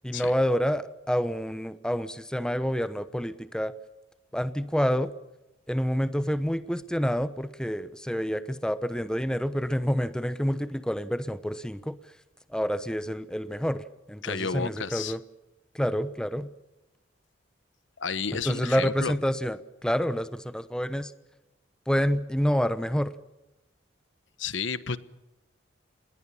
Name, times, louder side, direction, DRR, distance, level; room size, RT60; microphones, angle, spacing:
voice 1, 0.0-3.7 4.3-5.1 5.7-12.0 12.5-15.2 15.7-16.5 18.3-21.1 21.9-23.1, equal, 5° left, 12 dB, 0.9 m, -28 dB
voice 2, 14.2-15.2 18.0-19.1 24.4-25.0, left 5 dB, 70° left, 15 dB, 1.2 m, -31 dB
28.0 x 21.0 x 7.1 m, 0.97 s
head